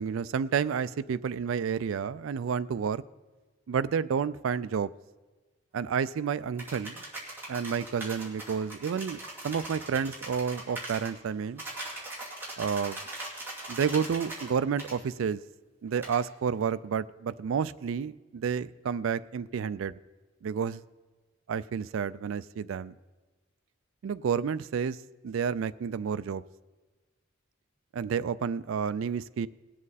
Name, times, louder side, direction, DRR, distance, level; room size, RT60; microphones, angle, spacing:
voice 1, 0.0-3.0 3.7-4.9 5.7-7.0 7.5-11.6 12.6-13.0 13.7-15.4 15.8-20.0 20.4-20.8 21.5-22.9 24.0-25.0 25.2-26.4 27.9-29.5, right 6 dB, 75° right, 0.3 m, -30 dB
sound 1, 6.6-11.1 11.6-14.5 14.8-14.9 16.0-16.2, right 2 dB, 10° right, 2.3 m, -40 dB
19.0 x 7.5 x 4.1 m
head